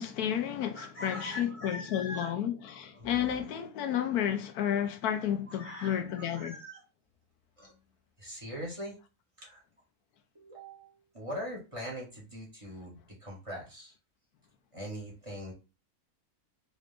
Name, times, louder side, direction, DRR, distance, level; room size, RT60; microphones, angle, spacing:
voice 1, 0.0-6.5, left 10 dB, 85° left, 1.1 m, -31 dB
voice 2, 0.7-2.3 2.9-3.4 5.5-6.8 7.6-7.7 8.2-8.9 9.4-9.6 10.3-13.9 14.7-15.5, equal, 20° right, 1.5 m, -42 dB
4.1 x 2.6 x 3.4 m
omnidirectional pair, 1.6 m